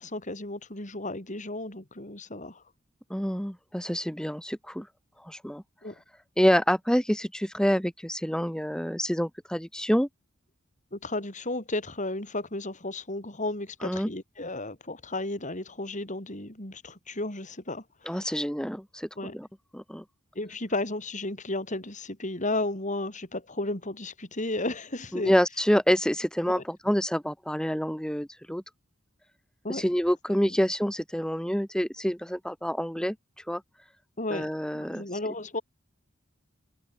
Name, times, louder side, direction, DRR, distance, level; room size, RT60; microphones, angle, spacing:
voice 1, 0.0-2.6 5.8-6.0 10.9-18.4 19.2-19.4 20.3-25.3 26.5-26.6 29.6-29.9 30.5-30.6 34.2-34.5 34.7-35.6, left 2 dB, 40° left, 6.4 m, -33 dB
voice 2, 3.1-4.9 5.2-5.6 6.4-10.1 13.8-14.1 18.1-19.5 19.7-20.0 25.1-28.6 29.7-33.1 33.5-33.6 34.3-35.0, equal, 5° left, 4.4 m, -27 dB
head